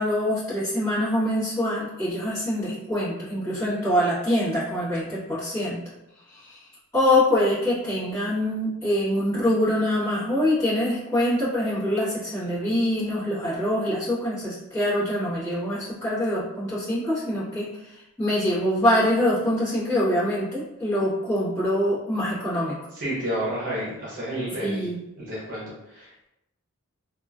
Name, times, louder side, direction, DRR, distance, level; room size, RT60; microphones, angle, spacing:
voice 1, 0.0-5.8 6.3-6.6 6.9-22.8 24.6-25.0, left 1 dB, 15° left, -14 dB, 1.4 m, -24 dB
voice 2, 22.9-24.9 25.2-26.3, equal, 40° right, -7 dB, 0.8 m, -31 dB
2.8 x 2.3 x 2.4 m, 0.89 s
head